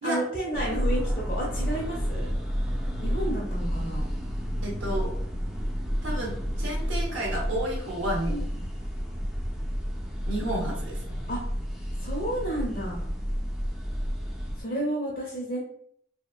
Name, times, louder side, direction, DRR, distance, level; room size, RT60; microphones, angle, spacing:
voice 1, 0.0-2.3 3.0-4.1 8.3-8.4 11.3-11.4 12.0-13.1 14.6-15.6, right 1 dB, 45° left, -6 dB, 0.6 m, -31 dB
sound 1, 0.5-14.6, equal, ahead, 0.3 m, -30 dB
voice 2, 4.6-5.1 6.0-8.3 10.3-11.1, right 1 dB, 85° right, -2 dB, 0.7 m, -31 dB
2.8 x 2.1 x 2.3 m, 0.66 s
head